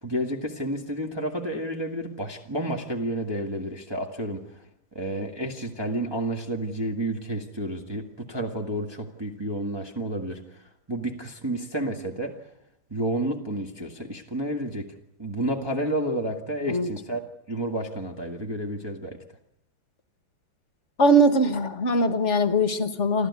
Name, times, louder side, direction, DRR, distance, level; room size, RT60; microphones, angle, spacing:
voice 1, 0.0-4.6 4.9-12.3 12.9-14.9 15.2-17.2 17.5-19.2, right 1 dB, 15° right, 1 dB, 1.7 m, -30 dB
voice 2, 21.0-23.3, right 1 dB, 40° left, 11 dB, 1.5 m, -21 dB
28.5 x 13.0 x 9.7 m, 0.80 s
omnidirectional pair, 2.2 m